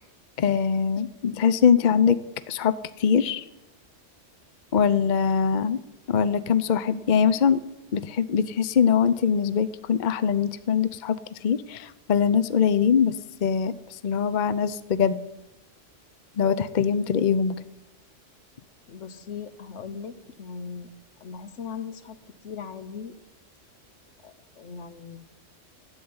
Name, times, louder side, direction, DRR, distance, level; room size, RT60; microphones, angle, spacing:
voice 1, 0.4-2.2 2.5-3.4 4.7-5.8 6.1-7.6 7.9-11.2 11.4-15.2 16.4-17.6, left 7 dB, 50° left, 13 dB, 0.7 m, -22 dB
voice 2, 18.9-20.9 21.2-22.2 22.4-23.1 24.2-25.2, left 6 dB, 75° left, 11 dB, 1.3 m, -39 dB
13.0 x 7.9 x 9.6 m, 0.95 s
omnidirectional pair, 1.3 m